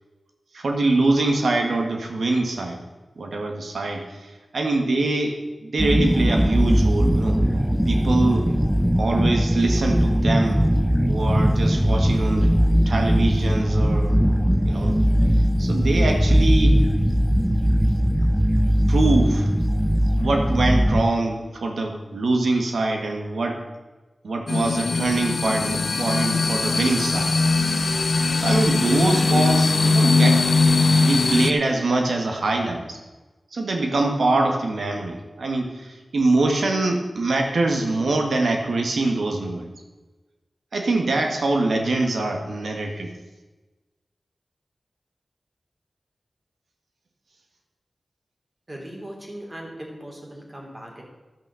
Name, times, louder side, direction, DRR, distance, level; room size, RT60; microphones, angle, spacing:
voice 1, 0.5-2.8 3.2-7.4 7.8-8.5 9.0-10.7 11.1-12.5 12.8-14.2 14.6-16.8 18.9-19.5 20.2-23.6 24.2-27.3 28.4-30.5 31.0-33.0 33.5-39.7 40.7-43.1, right 2 dB, 85° right, 3 dB, 1.7 m, -24 dB
sound 1, 5.8-21.0, equal, 5° right, 0.7 m, -19 dB
sound 2, 24.5-31.5, left 3 dB, 65° left, 0.8 m, -20 dB
voice 2, 48.7-51.0, right 1 dB, 25° right, -1 dB, 3.0 m, -38 dB
12.5 x 6.2 x 7.0 m, 1.2 s
wide cardioid pair, 100°, 0 cm